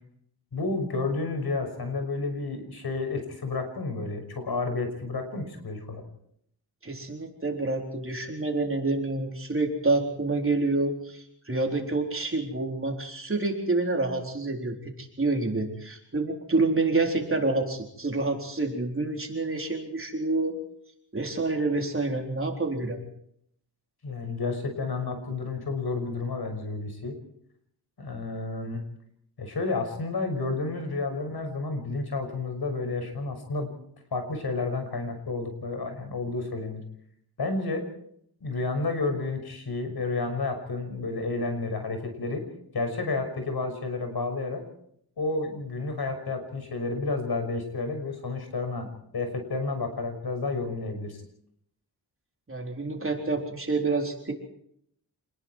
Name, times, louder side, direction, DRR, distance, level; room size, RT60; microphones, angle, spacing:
voice 1, 0.5-6.0 24.0-27.1 28.0-28.8 29.4-33.7 34.1-36.8 37.4-37.8 38.4-42.4 42.7-44.6 45.2-48.9 49.1-51.2, left 3 dB, 65° left, 6 dB, 6.0 m, -31 dB
voice 2, 6.8-20.5 21.1-23.0 52.5-54.3, right 3 dB, 30° right, 2 dB, 4.1 m, -28 dB
28.0 x 20.5 x 4.6 m, 0.69 s
wide cardioid pair, 105°, 41 cm